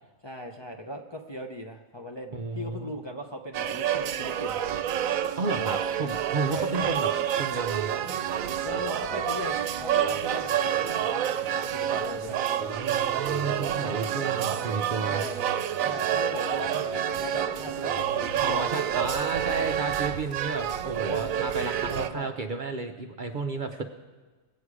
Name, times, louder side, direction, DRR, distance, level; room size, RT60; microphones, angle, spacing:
voice 1, 0.2-4.6 6.0-6.1 6.4-7.1 8.6-12.4 13.9-14.3 15.0-15.4 15.8-19.1 21.1-21.4 21.9-22.3, equal, 25° left, 1 dB, 0.6 m, -38 dB
voice 2, 2.3-2.9 5.3-7.1 7.4-7.9 12.8-15.2 18.4-23.8, right 3 dB, 45° right, 4 dB, 0.7 m, -32 dB
sound 1, 3.5-22.1, right 10 dB, 85° right, 1.0 m, -28 dB
sound 2, 8.0-18.5, right 2 dB, 20° right, 4.9 m, -43 dB
21.5 x 8.3 x 4.8 m, 1.3 s
omnidirectional pair, 1.4 m